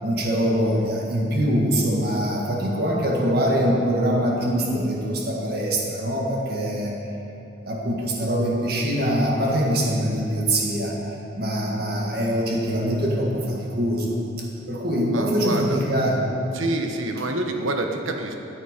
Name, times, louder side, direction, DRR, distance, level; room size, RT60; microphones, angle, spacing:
voice 1, 0.0-6.9 7.6-11.0 11.3-16.2, equal, 50° right, -2 dB, 1.8 m, -23 dB
voice 2, 15.1-15.8 16.5-18.3, right 2 dB, 90° right, 3 dB, 1.1 m, -27 dB
13.5 x 8.2 x 5.2 m, 2.9 s
head